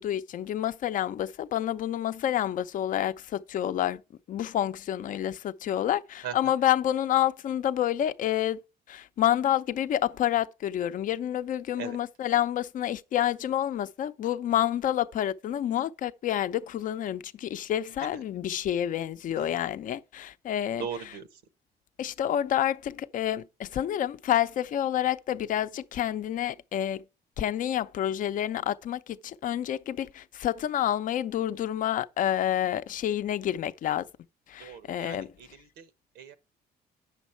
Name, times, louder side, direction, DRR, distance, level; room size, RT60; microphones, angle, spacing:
voice 1, 0.0-4.0 4.3-8.6 8.9-21.1 22.0-27.0 27.4-34.1 34.5-35.3, left 11 dB, 50° left, 0.6 m, -28 dB
voice 2, 20.8-21.3 34.6-35.9 36.1-36.3, right 7 dB, 90° right, 1.2 m, -39 dB
9.0 x 6.3 x 4.4 m
cardioid pair, 110°, 17 cm